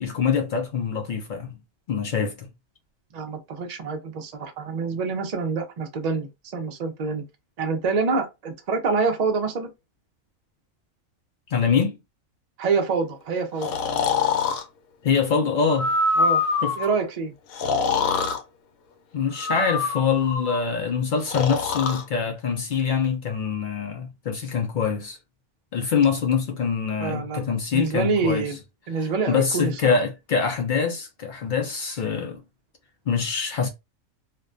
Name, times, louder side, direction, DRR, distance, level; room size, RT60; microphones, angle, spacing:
voice 1, 0.0-1.6 1.9-2.5 11.5-12.0 15.0-15.9 16.6-16.7 19.1-25.2 25.7-28.5 29.0-32.4 33.1-33.7, left 6 dB, 65° left, 0.5 m, -24 dB
voice 2, 3.1-7.2 7.6-9.7 12.6-13.8 16.2-16.4 16.8-17.3 27.0-27.5 27.7-28.6 28.9-30.0, right 4 dB, 60° right, 0.4 m, -26 dB
Breathing, 13.6-14.6 15.7-16.9 17.5-18.4 19.4-20.6 21.2-22.0, left 4 dB, 85° left, 1.0 m, -24 dB
2.5 x 2.1 x 2.4 m
omnidirectional pair, 1.4 m